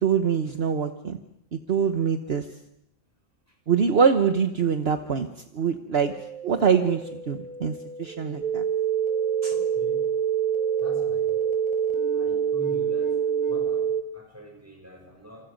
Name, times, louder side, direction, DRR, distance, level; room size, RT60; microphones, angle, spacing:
voice 1, 0.0-1.2 1.5-2.5 3.7-5.3 5.5-6.1 6.4-8.6 9.4-9.5, right 6 dB, 60° right, 7 dB, 1.3 m, -24 dB
sound 1, 6.0-13.5, right 1 dB, 5° left, 5.7 m, -40 dB
sound 2, 8.4-14.0, right 8 dB, 35° right, 1.6 m, -25 dB
voice 2, 9.5-10.1 10.8-11.4 12.1-13.2 13.5-15.5, right 2 dB, 10° right, 2 dB, 6.6 m, -44 dB
28.0 x 28.0 x 5.3 m, 0.78 s
omnidirectional pair, 1.2 m